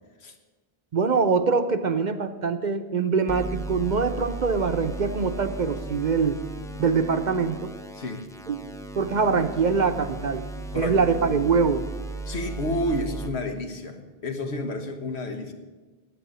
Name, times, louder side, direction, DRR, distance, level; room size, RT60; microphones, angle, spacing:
voice 1, 0.9-6.4 6.8-7.7 8.5-8.6 9.0-10.4 10.7-11.9, right 5 dB, 50° right, 9 dB, 0.8 m, -23 dB
sound 1, 3.3-13.3, right 2 dB, 5° left, 0.5 m, -36 dB
voice 2, 7.9-8.2 10.7-10.9 12.3-15.5, left 1 dB, 85° left, 6 dB, 1.5 m, -30 dB
10.5 x 8.5 x 9.8 m, 1.3 s
omnidirectional pair, 1.1 m